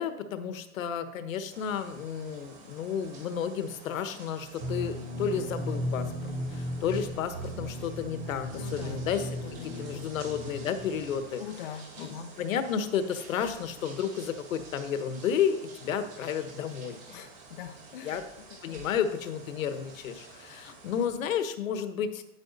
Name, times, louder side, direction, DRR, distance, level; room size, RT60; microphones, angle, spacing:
voice 1, 0.0-9.3 9.6-11.4 12.0-17.0 18.0-18.2 18.6-22.2, left 8 dB, 70° left, 10 dB, 1.3 m, -32 dB
sound 1, 1.5-21.1, right 3 dB, 30° right, 1.8 m, -50 dB
sound 2, 4.6-11.2, equal, 10° right, 0.6 m, -36 dB
voice 2, 8.5-9.1 9.4-10.2 11.4-12.3 17.1-18.2 18.5-18.9, left 9 dB, 40° left, 4 dB, 0.7 m, -43 dB
10.0 x 9.2 x 4.0 m, 0.81 s
supercardioid pair, 175°, 42 cm